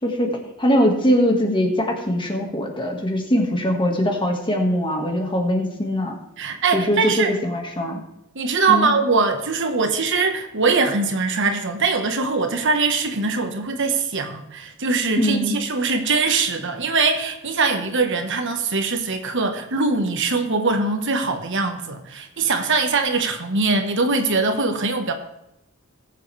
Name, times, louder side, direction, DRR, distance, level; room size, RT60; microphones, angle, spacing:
voice 1, 0.0-6.2 6.7-8.0 8.7-8.9 15.2-15.6, equal, 25° left, 2 dB, 1.8 m, -22 dB
voice 2, 6.4-7.4 8.3-25.1, right 4 dB, 60° right, 6 dB, 1.4 m, -22 dB
20.0 x 7.5 x 3.4 m, 0.85 s
head